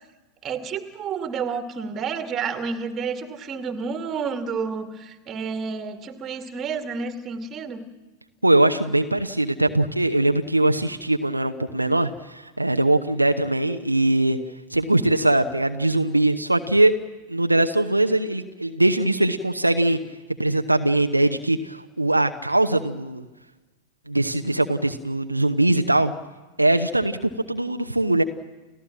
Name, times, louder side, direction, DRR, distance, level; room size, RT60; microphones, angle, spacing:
voice 1, 0.4-7.8, right 5 dB, 25° right, 7 dB, 2.4 m, -30 dB
voice 2, 8.4-14.4 14.7-16.9 17.3-20.0 20.4-23.3 24.1-26.1 26.6-28.2, right 1 dB, 85° right, 6 dB, 0.9 m, -21 dB
30.0 x 15.0 x 7.5 m, 1.2 s
figure-of-eight pair, 90°, 0 cm